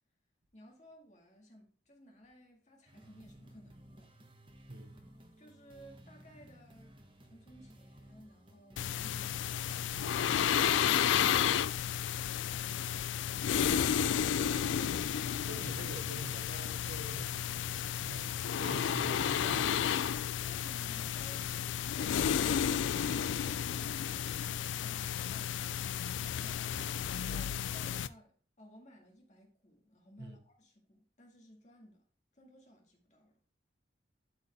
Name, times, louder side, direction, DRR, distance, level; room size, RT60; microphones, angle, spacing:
voice 1, 0.5-4.1 5.4-7.0 7.2-12.0 20.4-25.9 26.3-32.1 32.3-33.4, equal, 40° left, 1.9 m, -58 dB
sound 1, 2.9-10.6, equal, 25° right, 1.0 m, -57 dB
voice 2, 4.7-5.0 9.9-10.7 15.5-17.7 18.0-20.0 26.8-27.0 30.2-30.4, right 1 dB, 60° right, 1.1 m, -47 dB
sound 2, 8.8-28.1, left 9 dB, 90° left, 0.4 m, -32 dB
12.0 x 4.7 x 3.4 m
head